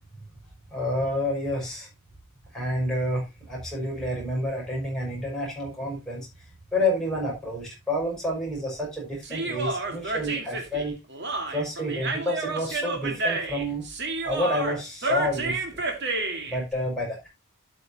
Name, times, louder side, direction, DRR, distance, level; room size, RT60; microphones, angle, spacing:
voice 1, 0.7-1.9 2.5-6.5 6.7-11.0 11.5-13.9 14.2-15.8 16.5-17.3, left 1 dB, ahead, -3 dB, 5.9 m, -29 dB
Human voice, 9.2-16.6, right 3 dB, 50° right, 2.0 m, -30 dB
12.5 x 6.8 x 2.9 m, 0.24 s
head